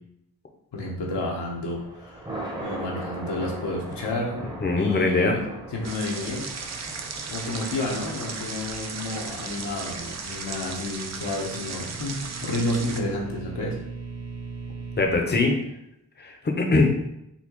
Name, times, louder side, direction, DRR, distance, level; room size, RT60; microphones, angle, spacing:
voice 1, 0.7-2.3 2.6-4.4 4.8-5.4 5.7-6.4 7.3-13.8, left 2 dB, 80° left, -2 dB, 1.0 m, -30 dB
Thunder, 1.5-12.7, right 1 dB, 10° right, 0.8 m, -40 dB
voice 2, 4.6-5.4 15.0-15.6 16.2-16.9, left 3 dB, 25° left, 2 dB, 0.7 m, -22 dB
sound 1, 5.8-13.0, right 4 dB, 40° right, 0.5 m, -36 dB
sound 2, 10.7-15.1, right 4 dB, 75° right, 1.0 m, -39 dB
4.1 x 2.3 x 2.9 m, 0.80 s
cardioid pair, 50°, 41 cm